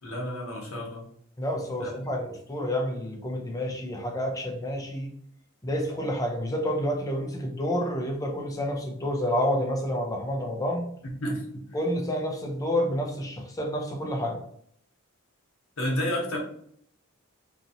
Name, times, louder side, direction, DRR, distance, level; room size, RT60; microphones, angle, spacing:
voice 1, 0.0-1.1 1.8-2.0 11.2-11.4 15.8-16.4, equal, 65° left, -1 dB, 1.0 m, -30 dB
voice 2, 1.4-5.1 5.6-10.8 11.7-14.4, equal, 15° left, 2 dB, 0.5 m, -29 dB
2.9 x 2.6 x 2.6 m, 0.65 s
head